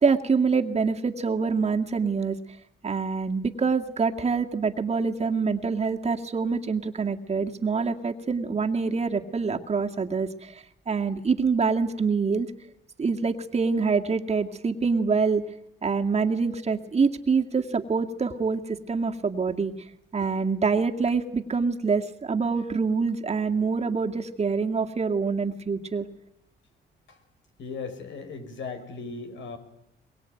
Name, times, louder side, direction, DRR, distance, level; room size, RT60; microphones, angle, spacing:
voice 1, 0.0-2.4 2.8-12.5 13.0-15.4 15.8-19.7 20.1-26.1, right 5 dB, 35° right, 4 dB, 2.1 m, -25 dB
voice 2, 27.6-29.6, left 4 dB, 70° left, 8 dB, 5.6 m, -37 dB
23.0 x 22.5 x 9.2 m, 0.81 s
cardioid pair, 90°, 20 cm